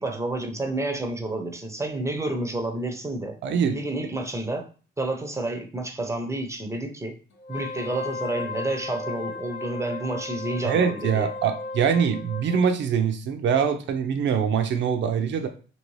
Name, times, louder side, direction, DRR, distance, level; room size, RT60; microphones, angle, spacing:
voice 1, 0.0-3.4 3.7-4.7 5.0-7.1 7.5-11.3, right 2 dB, 15° right, 0.6 m, -30 dB
voice 2, 3.4-3.8 10.6-15.5, right 7 dB, 70° right, 0.6 m, -23 dB
Wind instrument woodwind instrument, 7.4-12.7, left 3 dB, 70° left, 0.7 m, -35 dB
2.9 x 2.7 x 3.1 m
cardioid pair, 90°, 20 cm